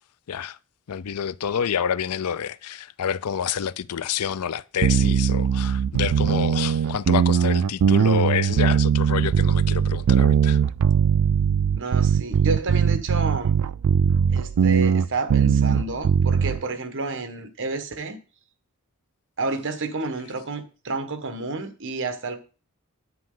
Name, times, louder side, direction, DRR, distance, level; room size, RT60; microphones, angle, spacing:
voice 1, 0.3-0.6 0.9-10.6, left 8 dB, 85° left, 0.5 m, -28 dB
sound 1, 4.8-16.6, right 7 dB, 80° right, 0.4 m, -20 dB
voice 2, 11.7-13.6 14.3-18.2 19.4-22.4, right 3 dB, 60° right, 1.4 m, -30 dB
9.9 x 8.7 x 3.8 m
head